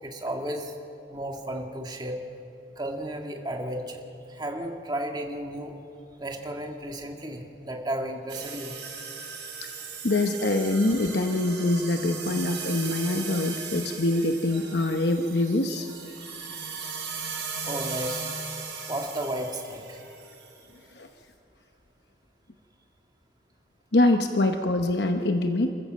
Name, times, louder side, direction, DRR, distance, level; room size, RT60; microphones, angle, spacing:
voice 1, 0.0-0.8 1.1-2.2 2.8-5.7 6.2-8.8 17.6-18.3 18.9-20.0, right 1 dB, 20° right, 2 dB, 1.9 m, -33 dB
sound 1, 8.3-20.6, right 5 dB, 65° right, 5.4 m, -37 dB
voice 2, 10.0-15.9 20.9-21.1 23.9-25.7, left 2 dB, 60° left, 6 dB, 0.9 m, -24 dB
27.5 x 14.5 x 7.6 m, 2.8 s
head